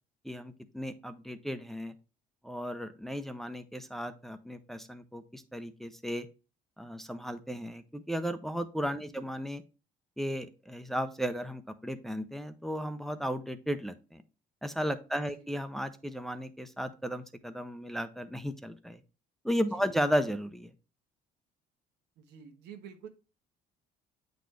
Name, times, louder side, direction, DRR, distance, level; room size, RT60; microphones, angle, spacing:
voice 1, 0.2-1.9 2.4-6.3 6.8-9.6 10.2-14.2 14.6-19.0 19.4-20.7, equal, ahead, 9 dB, 0.6 m, -35 dB
voice 2, 9.0-9.3 15.3-15.5 19.5-20.0 22.2-23.1, right 7 dB, 85° right, 6 dB, 1.3 m, -50 dB
8.1 x 4.1 x 3.2 m, 0.31 s
cardioid pair, 110°, 17 cm